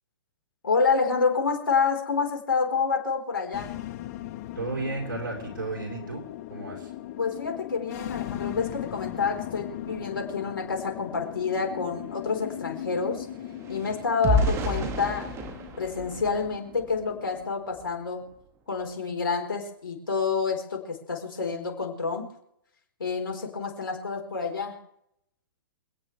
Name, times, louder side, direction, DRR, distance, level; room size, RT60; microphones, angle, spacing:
voice 1, 0.6-3.7 7.2-13.3 13.7-15.3 15.8-18.3 18.7-22.3 23.0-24.8, left 5 dB, 80° left, 2 dB, 4.3 m, -28 dB
sound 1, 3.5-17.5, left 13 dB, 45° left, 1.1 m, -38 dB
voice 2, 4.5-6.2 6.5-6.9, right 3 dB, 85° right, -1 dB, 4.7 m, -33 dB
sound 2, 11.3-11.4 11.7-17.1 17.7-17.9 18.2-18.5, equal, 25° right, 1.8 m, -31 dB
27.5 x 9.2 x 3.4 m, 0.77 s
hypercardioid pair, 130°, 11 cm